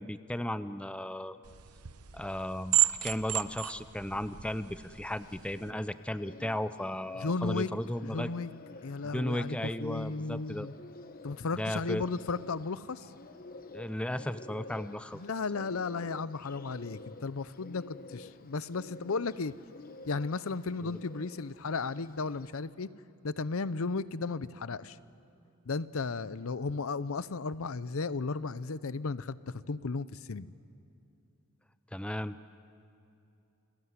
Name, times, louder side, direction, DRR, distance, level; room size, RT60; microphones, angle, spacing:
voice 1, 0.0-1.4 2.1-8.3 9.1-10.7 11.5-12.0 13.7-15.2 20.8-21.0 31.9-32.4, left 1 dB, 5° left, 12 dB, 0.5 m, -35 dB
sound 1, 1.4-5.7, right 16 dB, 90° right, 0.9 m, -33 dB
Bird, 5.2-22.5, left 2 dB, 40° left, 1.0 m, -51 dB
voice 2, 7.2-7.7 8.0-8.5 8.8-10.7 11.2-13.1 15.1-19.5 20.1-22.9 23.2-25.0 25.7-30.5, left 4 dB, 65° left, 16 dB, 0.7 m, -34 dB
29.5 x 20.5 x 9.6 m, 2.7 s
head